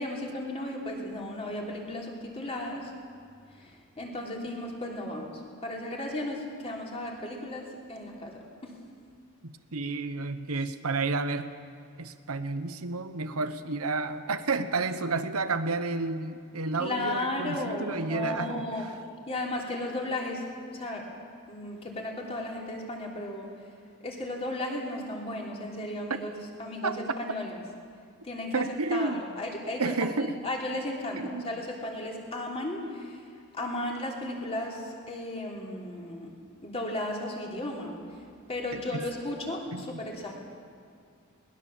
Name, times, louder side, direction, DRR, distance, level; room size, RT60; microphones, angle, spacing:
voice 1, 0.0-2.9 4.0-8.3 8.6-8.7 16.8-18.8 19.3-20.4 20.7-21.0 21.5-23.5 24.0-26.3 26.6-27.5 28.2-28.6 28.9-30.1 30.4-33.2 33.5-36.3 36.6-38.0 38.5-40.3, left 1 dB, 25° left, -1 dB, 3.2 m, -34 dB
voice 2, 9.4-11.5 12.0-18.9 26.8-27.0 28.5-29.2 29.8-30.4 31.2-31.5 38.7-39.0 39.7-40.0, right 3 dB, 75° right, 10 dB, 1.1 m, -31 dB
21.0 x 19.5 x 7.3 m, 2.2 s
head